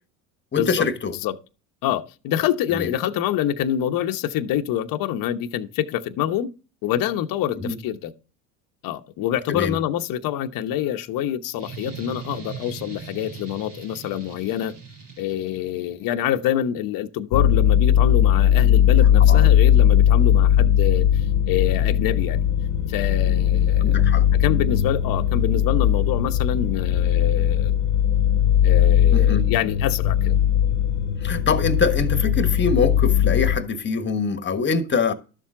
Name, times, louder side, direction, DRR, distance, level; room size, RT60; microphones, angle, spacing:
voice 1, 0.5-1.1 2.7-2.9 7.6-7.8 9.5-9.8 19.2-19.5 23.8-24.2 29.1-29.5 31.2-35.1, left 5 dB, 25° left, 1.4 m, -24 dB
voice 2, 1.8-6.5 6.8-8.1 8.8-14.7 15.2-22.4 22.9-24.0 24.3-27.7 28.6-30.4, left 11 dB, 50° left, 1.0 m, -26 dB
sound 1, 11.6-16.0, right 5 dB, 80° right, 5.1 m, -39 dB
sound 2, 17.3-33.6, left 10 dB, 75° left, 1.2 m, -18 dB
12.5 x 7.3 x 3.8 m
hypercardioid pair, 90°, 43 cm